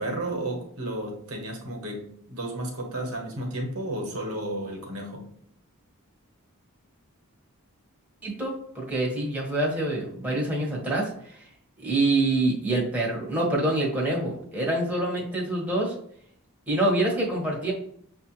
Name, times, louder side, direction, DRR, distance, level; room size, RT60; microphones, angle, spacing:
voice 1, 0.0-5.3, right 1 dB, 70° right, 1 dB, 1.2 m, -32 dB
voice 2, 8.2-11.4 11.8-15.9 16.7-17.7, right 2 dB, 5° right, -4 dB, 1.1 m, -26 dB
6.2 x 2.5 x 2.9 m, 0.65 s
head